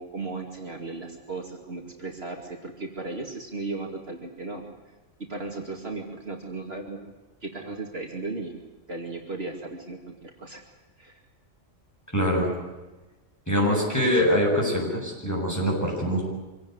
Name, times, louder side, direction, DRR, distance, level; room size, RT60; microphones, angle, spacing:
voice 1, 0.0-4.7 5.3-7.1 7.4-8.6 8.9-10.6 11.0-11.2, right 3 dB, 50° right, 1 dB, 2.7 m, -36 dB
voice 2, 12.1-12.5 13.5-16.2, equal, 10° left, -2 dB, 8.0 m, -23 dB
25.5 x 18.0 x 9.6 m, 1.2 s
omnidirectional pair, 1.3 m